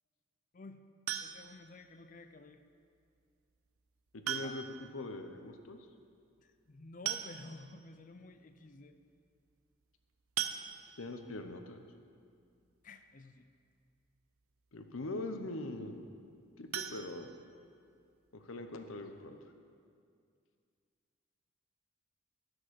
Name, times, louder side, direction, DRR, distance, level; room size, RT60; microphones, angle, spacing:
sound 1, 1.1-1.7 3.2-3.3 4.2-4.9 5.2-5.3 5.6-5.7 6.7-6.8 7.1-7.8 8.3-8.4 8.8-8.9 10.4-11.2 16.7-17.9 18.3-18.4 18.8-18.9 19.3-19.4, right 10 dB, 90° right, 0.5 m, -39 dB
voice 1, 1.2-2.6 4.4-4.5 6.4-9.0 12.8-13.5, left 2 dB, 40° left, 9 dB, 0.5 m, -52 dB
voice 2, 4.1-4.6 4.9-5.8 11.0-11.8 14.7-16.0 16.6-17.3 18.3-19.4, left 2 dB, 75° left, 7 dB, 0.8 m, -42 dB
12.5 x 6.2 x 6.4 m, 2.3 s
head